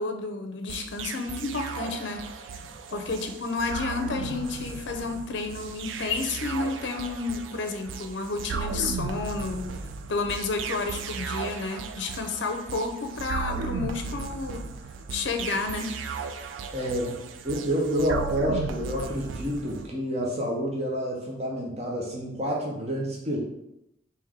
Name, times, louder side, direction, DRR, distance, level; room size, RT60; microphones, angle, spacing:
voice 1, 0.0-2.3 2.9-9.7 10.1-14.7 15.1-16.0, left 3 dB, 75° left, 6 dB, 0.5 m, -31 dB
sound 1, 0.7-19.9, right 5 dB, 85° right, 0.3 m, -36 dB
voice 2, 16.7-23.4, equal, 35° right, -3 dB, 0.6 m, -29 dB
3.5 x 2.9 x 3.5 m, 0.85 s
head